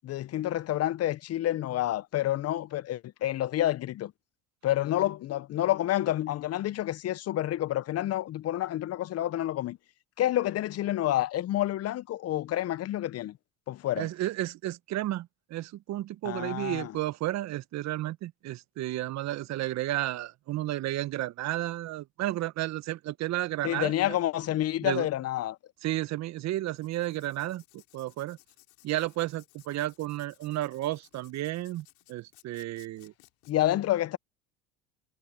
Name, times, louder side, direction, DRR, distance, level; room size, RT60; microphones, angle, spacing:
voice 1, 0.0-4.1 4.6-9.8 10.2-13.4 13.7-14.1 16.2-16.9 23.6-25.6 33.5-34.2, left 13 dB, 45° left, 1.1 m, -29 dB
voice 2, 14.0-24.2 24.8-25.1 25.8-28.4 28.8-33.1, right 15 dB, 55° right, 1.6 m, -32 dB
Writing, 26.8-33.5, left 32 dB, 70° left, 4.2 m, -61 dB
hypercardioid pair, 70°, 33 cm